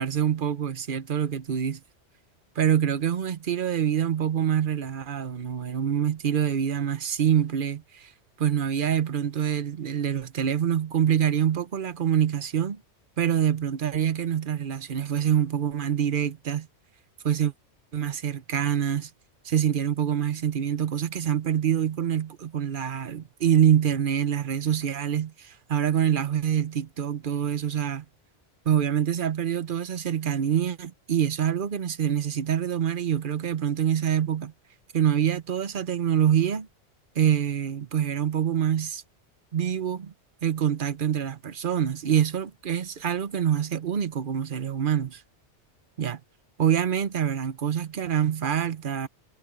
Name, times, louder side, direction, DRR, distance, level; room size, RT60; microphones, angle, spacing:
voice 1, 0.0-1.8 2.6-8.1 8.4-12.8 13.2-16.7 17.2-17.5 17.9-19.1 19.4-28.0 28.6-34.5 34.9-36.7 37.1-39.0 39.5-40.1 40.4-45.2 46.0-46.2 46.6-49.1, right 9 dB, 50° right, 1.0 m, -25 dB
omnidirectional pair, 1.2 m